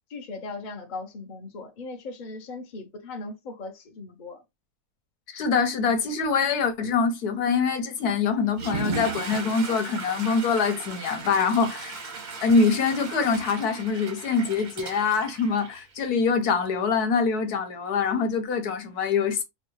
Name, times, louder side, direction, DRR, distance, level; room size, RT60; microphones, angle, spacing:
voice 1, 0.1-4.4, left 3 dB, 40° left, 0.8 m, -38 dB
voice 2, 5.3-12.0 12.4-19.4, left 5 dB, 85° left, 1.4 m, -24 dB
Water / Toilet flush, 8.5-16.2, right 4 dB, 40° right, 0.7 m, -36 dB
5.4 x 2.3 x 3.0 m
omnidirectional pair, 1.6 m